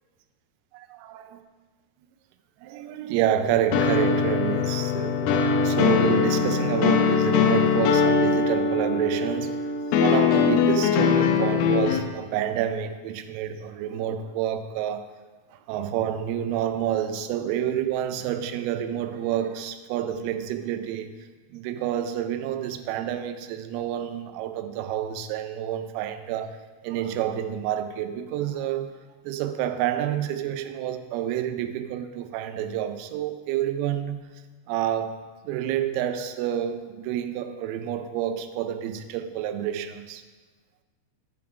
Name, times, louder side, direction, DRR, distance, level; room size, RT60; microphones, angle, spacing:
voice 1, 0.7-1.4 2.6-9.7 10.0-15.1 15.7-21.1 21.5-26.6 26.8-28.9 29.2-34.2 34.7-35.2 35.5-40.2, right 10 dB, 85° right, 2.5 m, -28 dB
sound 1, 3.7-12.0, left 6 dB, 80° left, 2.1 m, -22 dB
7.0 x 6.4 x 4.8 m
omnidirectional pair, 4.6 m